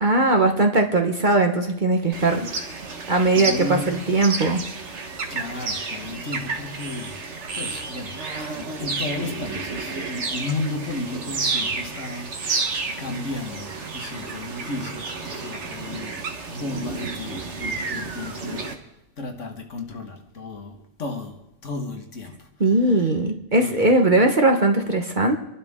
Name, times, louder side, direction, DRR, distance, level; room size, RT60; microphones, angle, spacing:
voice 1, 0.0-2.5 3.1-4.6 22.6-25.4, right 2 dB, 35° right, 1.2 m, -19 dB
sound 1, 2.1-18.7, right 4 dB, 55° right, 1.6 m, -31 dB
voice 2, 3.3-4.1 5.3-7.2 7.5-16.2 16.5-18.8 19.2-23.1 23.5-24.0, left 2 dB, 60° left, 1.8 m, -34 dB
27.0 x 12.0 x 3.6 m
omnidirectional pair, 1.4 m